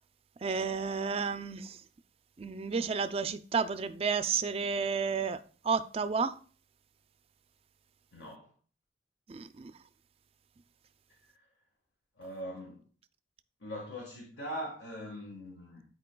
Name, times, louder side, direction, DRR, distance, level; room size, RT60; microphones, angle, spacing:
voice 1, 0.4-1.8 2.4-6.4 9.3-9.7, right 5 dB, 30° right, 0.4 m, -31 dB
voice 2, 8.1-8.5 12.2-12.9 13.6-15.8, equal, 75° left, 1.5 m, -41 dB
11.5 x 4.5 x 2.2 m
head